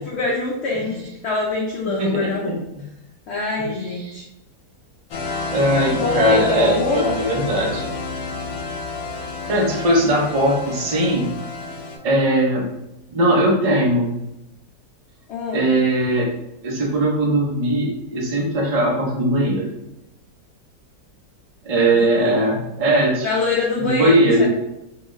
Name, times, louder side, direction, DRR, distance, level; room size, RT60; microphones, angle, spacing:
voice 1, 0.0-1.0 1.2-2.5 3.3-4.2 5.9-7.1 15.3-15.6 21.9-22.4 23.2-24.5, left 3 dB, 80° left, -3 dB, 0.5 m, -24 dB
voice 2, 2.0-2.8 3.6-4.2 5.5-7.8 9.5-11.3 12.0-12.7 13.1-14.1 15.5-16.3 16.6-19.6 21.6-23.3 23.8-24.5, right 1 dB, 75° right, -3 dB, 0.3 m, -19 dB
sound 1, 5.1-12.0, left 3 dB, 65° left, 1.0 m, -30 dB
2.9 x 2.3 x 3.1 m, 0.89 s
omnidirectional pair, 1.8 m